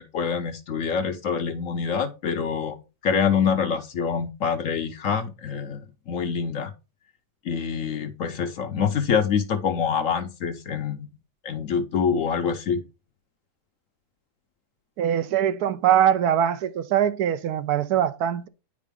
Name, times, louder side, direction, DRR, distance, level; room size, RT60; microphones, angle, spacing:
voice 1, 0.0-5.8 6.1-6.7 7.5-11.1 11.4-12.8, left 6 dB, 65° left, 0.9 m, -26 dB
voice 2, 15.0-18.5, right 10 dB, 75° right, 1.1 m, -22 dB
9.2 x 4.9 x 3.5 m
omnidirectional pair, 1.7 m